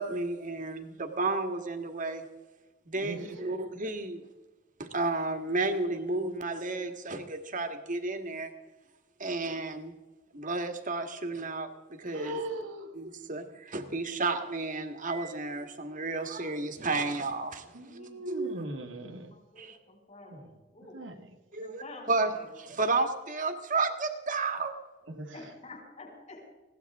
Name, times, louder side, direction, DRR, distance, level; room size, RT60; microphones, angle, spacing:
voice 1, 0.0-2.3 2.9-4.2 4.8-8.5 9.2-9.9 10.3-12.5 12.9-18.0 18.3-18.6 19.6-19.8 21.5-24.7, right 3 dB, 45° right, 6 dB, 1.7 m, -32 dB
voice 2, 12.1-12.9 17.7-19.3 20.3-20.5 20.9-21.2 25.1-25.3, right 1 dB, 90° right, 3 dB, 2.1 m, -39 dB
voice 3, 17.8-18.5 19.3-20.5 20.7-21.0 21.6-22.1 22.4-22.5 25.3-26.4, left 2 dB, 40° left, -3 dB, 6.5 m, -49 dB
20.5 x 17.0 x 3.6 m, 1.2 s
head